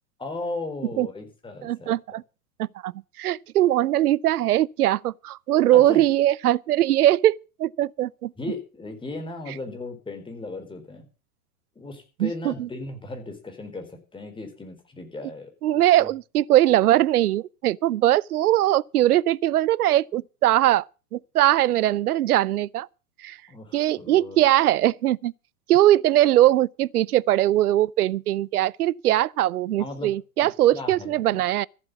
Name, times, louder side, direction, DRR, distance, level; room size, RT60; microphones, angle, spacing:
voice 1, 0.2-1.9 5.7-6.0 8.4-11.1 11.8-15.5 16.0-16.1 23.5-24.4 29.8-30.1 30.4-31.5, left 2 dB, 10° left, 4.2 m, -36 dB
voice 2, 1.6-2.2 2.6-2.9 3.2-8.3 12.2-12.7 15.6-20.9 21.1-22.9 23.2-23.4 23.7-25.3 25.7-31.7, right 13 dB, 80° right, 0.6 m, -21 dB
14.5 x 7.9 x 6.9 m
hypercardioid pair, 105°, 44 cm